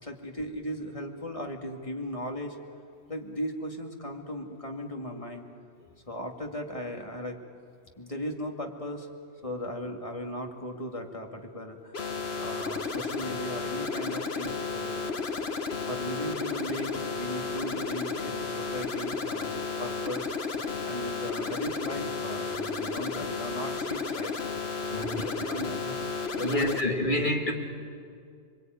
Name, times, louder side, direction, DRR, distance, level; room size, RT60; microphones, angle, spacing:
voice 1, 0.0-2.6 3.1-5.5 6.1-7.4 8.0-9.1 9.4-12.0 12.4-15.0 15.9-20.3 20.8-24.3 24.9-26.0 26.3-26.8, equal, 30° left, 2 dB, 2.4 m, -37 dB
sound 1, 11.9-26.8, left 4 dB, 65° left, 1.6 m, -33 dB
voice 2, 24.9-25.3 26.4-27.5, left 1 dB, 45° left, 1 dB, 2.9 m, -28 dB
27.0 x 23.0 x 9.5 m, 2.3 s
omnidirectional pair, 1.1 m